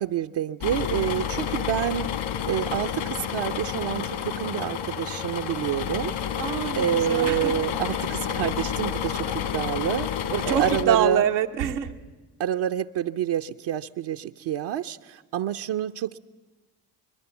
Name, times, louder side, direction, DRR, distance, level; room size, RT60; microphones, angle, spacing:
voice 1, 0.0-2.1 2.5-6.1 6.7-10.1 10.5-11.2 12.4-16.2, right 9 dB, 55° right, 7 dB, 0.7 m, -28 dB
sound 1, 0.6-10.8, left 9 dB, 70° left, 2.3 m, -30 dB
voice 2, 6.4-7.5 10.3-11.9, right 10 dB, 85° right, 4 dB, 1.0 m, -25 dB
25.0 x 21.5 x 7.1 m, 1.2 s
hypercardioid pair, 45°, 49 cm